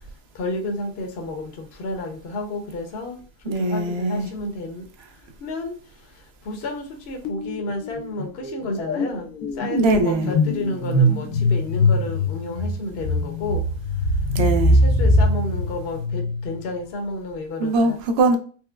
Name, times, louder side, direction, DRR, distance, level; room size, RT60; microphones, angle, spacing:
voice 1, 0.3-3.2 3.6-4.8 5.4-5.8 6.5-9.3 9.6-13.6 14.8-18.0, left 2 dB, 55° left, 0.8 m, -31 dB
voice 2, 3.5-4.3 9.7-10.3 14.3-14.8 17.6-18.4, right 2 dB, 60° right, 0.7 m, -21 dB
sound 1, 7.3-7.6 7.8-16.6, left 1 dB, 85° left, 1.1 m, -22 dB
4.3 x 2.0 x 2.3 m
omnidirectional pair, 1.5 m